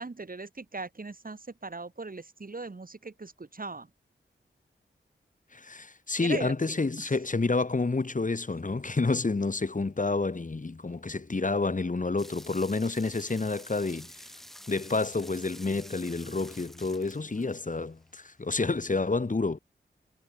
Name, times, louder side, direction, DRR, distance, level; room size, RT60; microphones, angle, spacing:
voice 1, 0.0-3.9 6.2-7.1, right 3 dB, 45° right, 5.3 m, -40 dB
voice 2, 5.5-14.1 14.7-19.6, left 3 dB, 40° left, 2.3 m, -29 dB
sound 1, 12.2-18.0, equal, ahead, 4.3 m, -49 dB
cardioid pair, 55°, 19 cm